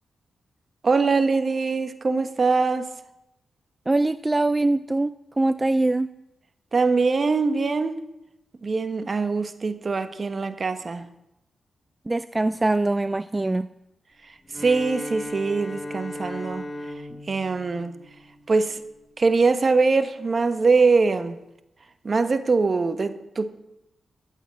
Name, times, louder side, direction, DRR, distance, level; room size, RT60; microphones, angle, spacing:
voice 1, 0.8-2.9 6.7-8.0 8.6-11.0 14.6-16.6 17.3-17.9 18.5-18.8 19.2-21.4 22.0-23.5, right 4 dB, 50° right, 1.2 m, -22 dB
voice 2, 3.9-6.1 12.1-13.7, right 2 dB, 25° right, 0.4 m, -23 dB
Bowed string instrument, 14.5-18.8, left 1 dB, 30° left, 1.5 m, -37 dB
13.5 x 8.2 x 7.7 m
supercardioid pair, 50°, 0 cm